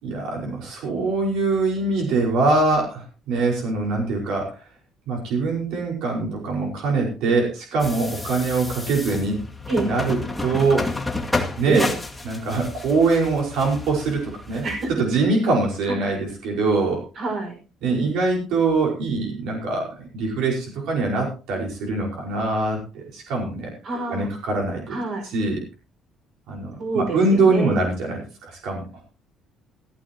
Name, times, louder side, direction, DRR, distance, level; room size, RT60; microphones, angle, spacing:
voice 1, 0.0-4.5 5.1-9.4 9.8-10.9 11.6-11.9 12.2-14.6 15.0-17.0 17.8-23.7 24.1-25.0 25.3-25.6 26.5-28.8, right 3 dB, 80° right, 0 dB, 5.1 m, -23 dB
sound 1, 7.8-14.9, left 2 dB, ahead, 2.1 m, -31 dB
voice 2, 11.7-12.0 14.6-14.9 15.9-16.0 17.1-17.6 23.8-24.3 24.9-25.3 26.8-27.8, right 3 dB, 45° right, 3 dB, 5.9 m, -26 dB
15.5 x 15.0 x 3.0 m, 0.33 s
cardioid pair, 165°, 0 cm